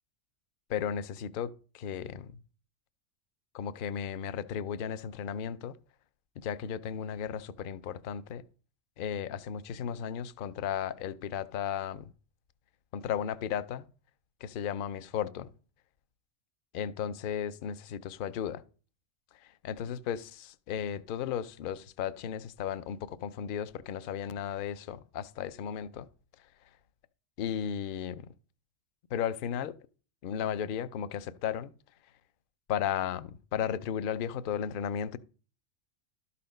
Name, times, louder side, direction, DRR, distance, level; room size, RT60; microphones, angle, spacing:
voice 1, 0.7-2.3 3.5-5.8 6.4-8.4 9.0-12.1 12.9-13.9 14.4-15.5 16.7-18.6 19.4-26.1 27.4-28.3 29.1-29.8 30.2-31.7 32.7-35.2, left 8 dB, 60° left, 0.6 m, -35 dB
12.5 x 4.2 x 5.2 m
omnidirectional pair, 1.3 m